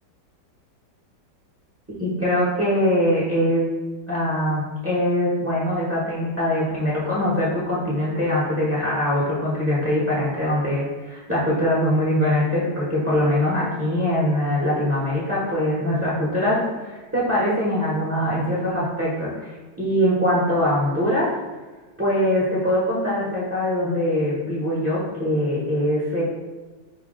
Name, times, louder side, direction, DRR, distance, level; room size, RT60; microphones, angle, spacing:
voice 1, 2.0-3.7 4.1-19.5 19.8-21.3 22.0-26.2, left 1 dB, 10° right, -7 dB, 0.7 m, -22 dB
5.6 x 2.3 x 3.9 m, 1.3 s
omnidirectional pair, 2.0 m